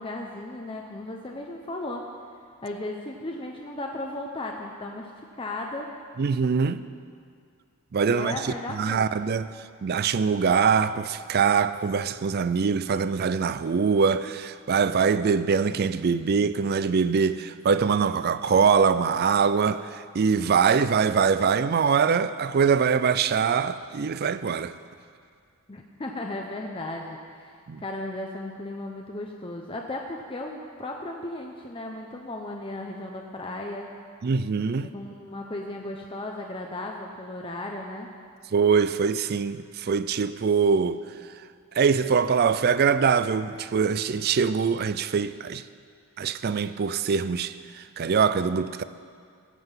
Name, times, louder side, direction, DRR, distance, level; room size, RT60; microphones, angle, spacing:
voice 1, 0.0-2.1 2.6-5.1 5.4-5.9 8.1-9.1 25.7-33.9 34.9-38.1, left 2 dB, 25° left, 0.6 m, -35 dB
voice 2, 6.2-6.8 7.9-9.5 9.8-24.7 27.7-27.8 34.2-34.9 38.5-41.0 41.8-45.6 46.2-48.8, right 6 dB, 45° right, 0.4 m, -23 dB
15.0 x 5.8 x 7.3 m
head